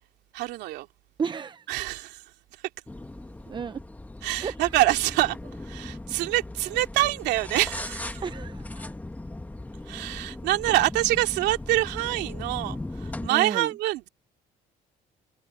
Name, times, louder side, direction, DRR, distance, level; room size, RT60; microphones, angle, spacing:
voice 1, 0.3-0.9 1.7-2.2 4.2-8.2 9.9-14.1, right 16 dB, 90° right, 2.8 m, -26 dB
voice 2, 1.2-1.7 3.5-3.8 4.4-4.5 8.2-8.9 10.7-10.8 13.3-13.7, right 6 dB, 25° right, 0.7 m, -32 dB
sound 1, 2.9-13.3, left 2 dB, 10° left, 1.7 m, -38 dB
cardioid pair, 110°, 17 cm